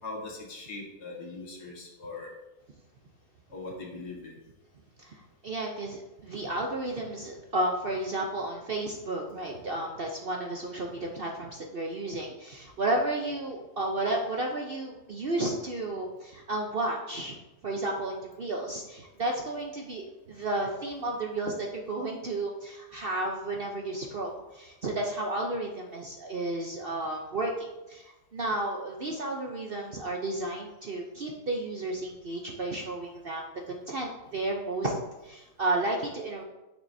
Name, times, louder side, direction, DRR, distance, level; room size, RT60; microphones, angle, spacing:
voice 1, 0.0-2.3 3.5-4.4, left 3 dB, 80° left, -2 dB, 2.2 m, -40 dB
voice 2, 5.0-17.3 17.6-34.9 35.2-36.4, right 2 dB, 50° right, 0 dB, 0.7 m, -32 dB
9.4 x 6.6 x 2.7 m, 1.0 s
omnidirectional pair, 1.7 m